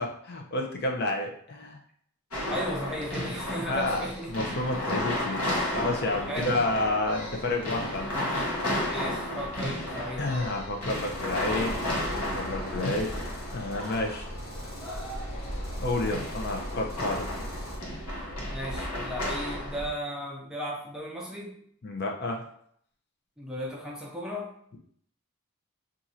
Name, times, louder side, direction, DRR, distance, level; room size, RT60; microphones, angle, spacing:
voice 1, 0.0-1.8 3.7-5.4 5.7-8.1 10.2-11.7 12.0-13.1 13.5-14.3 15.8-17.3 21.8-22.4, left 2 dB, 50° left, 2 dB, 0.5 m, -30 dB
sound 1, 2.3-19.9, left 1 dB, 85° left, 1.0 m, -33 dB
voice 2, 2.5-4.3 6.3-6.5 8.9-10.3 18.5-21.6 23.4-24.5, equal, 5° right, -3 dB, 0.5 m, -35 dB
sound 2, 10.9-17.8, equal, 65° left, 1.2 m, -43 dB
2.6 x 2.5 x 4.1 m, 0.65 s
head